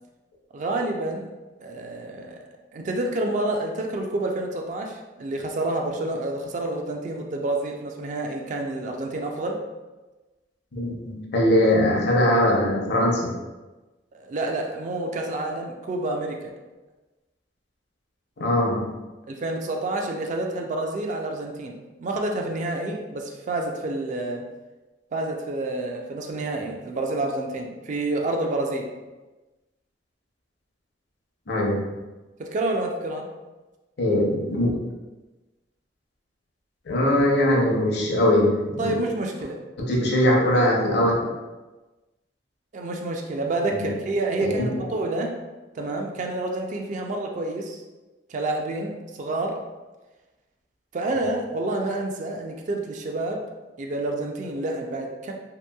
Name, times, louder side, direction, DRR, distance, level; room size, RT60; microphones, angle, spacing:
voice 1, 0.5-1.3 1.6-2.4 2.7-9.6 14.1-16.5 19.3-24.5 25.1-28.9 32.4-33.3 38.8-39.6 42.7-45.4 45.7-47.8 48.3-49.6 50.9-53.4 53.8-55.3, right 2 dB, 45° right, 2 dB, 0.3 m, -28 dB
voice 2, 10.7-13.3 18.4-18.9 31.5-31.8 34.0-34.7 36.9-39.0 39.8-41.3 43.7-43.8 44.4-44.9, left 1 dB, 70° left, -2 dB, 0.6 m, -21 dB
2.9 x 2.5 x 2.2 m, 1.2 s
head